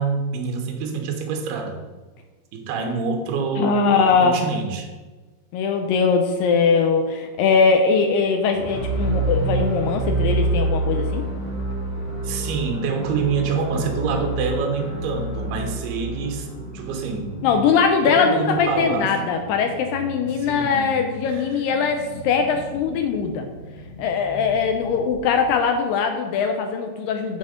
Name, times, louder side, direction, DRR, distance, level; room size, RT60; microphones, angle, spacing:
voice 1, 0.0-1.8 2.5-4.9 12.2-16.5 16.7-17.3 18.0-19.1 20.4-20.9 21.3-21.4, right 5 dB, 80° right, 4 dB, 2.9 m, -26 dB
voice 2, 3.6-4.5 5.5-11.2 17.4-23.5 24.0-27.4, left 5 dB, 85° left, 5 dB, 2.0 m, -21 dB
sound 1, 8.5-18.6, right 2 dB, 50° left, 2.0 m, -27 dB
sound 2, 10.7-25.7, left 1 dB, 45° right, 1.7 m, -40 dB
9.4 x 4.2 x 5.1 m, 1.3 s
omnidirectional pair, 4.7 m